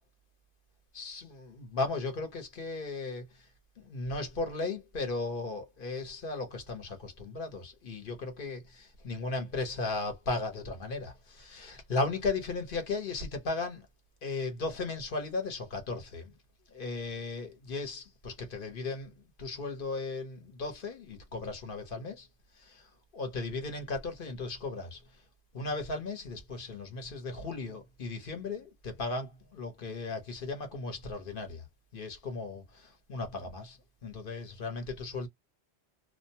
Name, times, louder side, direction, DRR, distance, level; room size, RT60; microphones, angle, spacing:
voice 1, 0.9-3.5 3.8-13.9 14.2-16.3 16.7-22.3 22.5-25.2 25.5-31.7 31.9-35.3, left 3 dB, 55° left, 1.1 m, -36 dB
2.5 x 2.1 x 2.7 m
omnidirectional pair, 1.1 m